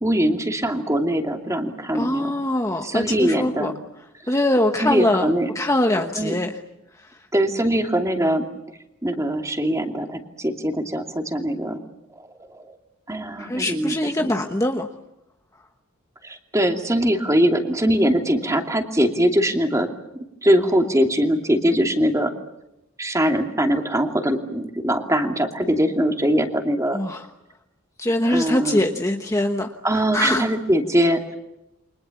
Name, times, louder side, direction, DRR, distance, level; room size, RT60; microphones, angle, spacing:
voice 1, 0.0-2.3 2.8-3.7 4.2-4.4 4.8-5.5 6.2-6.3 7.3-8.5 9.0-11.8 12.5-12.7 13.1-14.3 16.2-19.9 20.4-22.3 23.0-27.0 28.2-28.8 29.8-31.4, equal, 15° right, 4 dB, 2.6 m, -22 dB
voice 2, 1.9-3.7 4.3-5.3 5.5-6.6 7.0-7.2 13.4-14.9 26.9-27.3 28.0-30.4, left 1 dB, 15° left, 4 dB, 1.1 m, -23 dB
29.0 x 24.5 x 7.2 m, 0.90 s
head